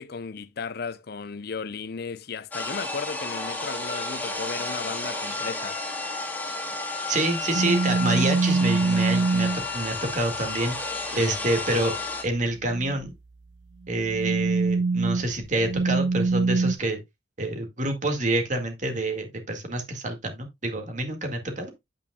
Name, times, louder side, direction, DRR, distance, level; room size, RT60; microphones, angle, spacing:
voice 1, 0.0-5.8 11.1-11.4, left 5 dB, 65° left, 0.6 m, -35 dB
sound 1, 2.5-12.2, left 3 dB, 10° left, 2.4 m, -32 dB
voice 2, 7.1-11.9 12.2-13.1 13.9-17.0 17.4-21.8, right 2 dB, 45° right, 1.9 m, -27 dB
sound 2, 7.5-9.6 12.6-13.0 13.9-16.7, right 3 dB, 70° right, 0.4 m, -24 dB
8.8 x 8.4 x 2.3 m
head